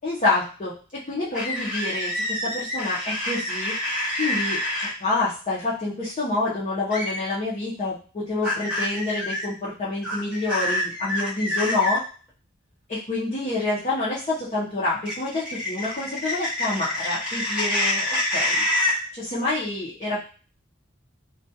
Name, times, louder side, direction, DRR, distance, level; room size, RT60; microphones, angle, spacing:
voice 1, 0.0-3.7 4.2-12.0 12.9-18.7 19.1-20.2, left 2 dB, 35° left, -9 dB, 0.7 m, -27 dB
sound 1, 1.3-4.9 6.9-7.2 8.4-9.4 10.0-12.0 15.0-19.0, left 1 dB, 5° right, 0.8 m, -27 dB
2.3 x 2.3 x 2.7 m, 0.38 s
head